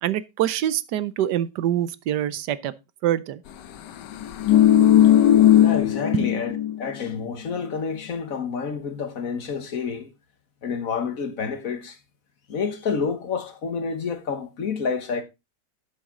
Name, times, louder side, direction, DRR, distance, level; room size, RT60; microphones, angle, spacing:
voice 1, 0.0-2.7 3.0-3.4 6.1-6.3, right 11 dB, 75° right, 1.3 m, -25 dB
sound 1, 4.1-6.8 7.1-7.2, left 11 dB, 85° left, 1.5 m, -17 dB
voice 2, 5.5-6.5 6.8-10.1 10.6-12.0 12.5-15.2, left 5 dB, 55° left, 1.6 m, -29 dB
12.0 x 7.2 x 3.7 m
omnidirectional pair, 1.8 m